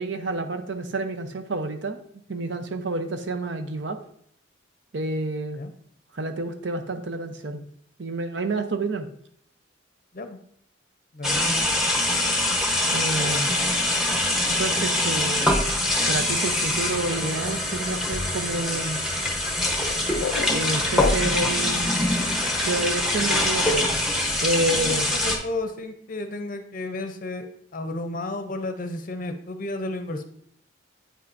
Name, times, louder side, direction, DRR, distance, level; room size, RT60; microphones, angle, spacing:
voice 1, 0.0-2.0 2.3-4.0 4.9-5.6 6.1-7.6 8.0-9.1 12.9-13.5 14.6-15.6 16.1-19.0 20.5-21.9 22.6-25.1, right 2 dB, 65° right, 8 dB, 0.7 m, -29 dB
voice 2, 11.1-11.7 24.7-27.5 27.7-30.2, left 2 dB, 45° left, 6 dB, 0.6 m, -32 dB
sound 1, 11.2-25.4, left 1 dB, ahead, 1.0 m, -24 dB
sound 2, 19.7-21.6, left 7 dB, 90° left, 0.4 m, -32 dB
8.8 x 5.6 x 2.6 m, 0.68 s
head